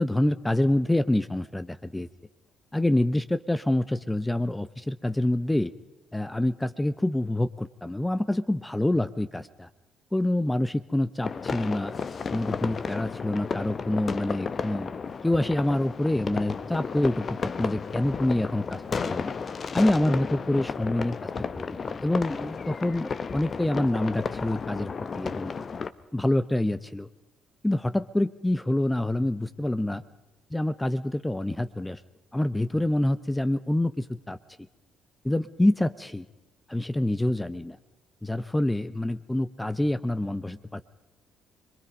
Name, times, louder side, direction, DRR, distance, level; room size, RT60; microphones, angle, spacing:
voice 1, 0.0-2.1 2.7-5.7 6.1-9.7 10.1-11.9 12.3-15.0 15.2-19.3 19.7-21.2 21.5-25.5 26.1-27.1 27.6-30.0 30.5-32.0 32.3-34.4 35.2-36.3 36.7-37.8 38.2-40.8, left 1 dB, 10° left, 13 dB, 0.8 m, -26 dB
sound 1, 11.2-25.9, left 5 dB, 40° left, 1.1 m, -33 dB
26.0 x 23.0 x 5.3 m, 1.0 s
figure-of-eight pair, 45°, 0 cm